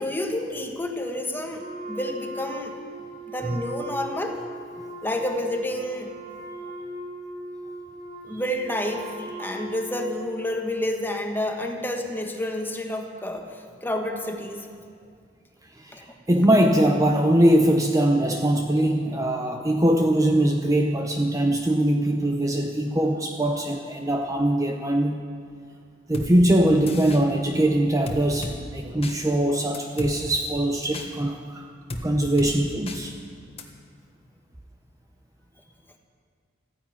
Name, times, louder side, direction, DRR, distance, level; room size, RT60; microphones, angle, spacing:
voice 1, 0.0-2.8 3.3-4.4 5.0-6.1 8.2-14.7 15.9-16.1, left 1 dB, 10° left, 3 dB, 1.4 m, -29 dB
Wind instrument woodwind instrument, 1.6-10.4, right 1 dB, 45° right, 3.0 m, -39 dB
voice 2, 15.8-25.2 26.1-31.7 32.0-33.1, right 1 dB, 20° right, 3 dB, 0.7 m, -22 dB
sound 1, 26.1-26.3 26.9-27.2 28.1-28.6 29.0-29.2 29.7-30.1 30.9-31.1 31.9-32.0 32.4-32.5 32.9-33.0 33.6-33.7, left 1 dB, 30° left, 1.4 m, -33 dB
14.5 x 10.0 x 9.0 m, 2.1 s
head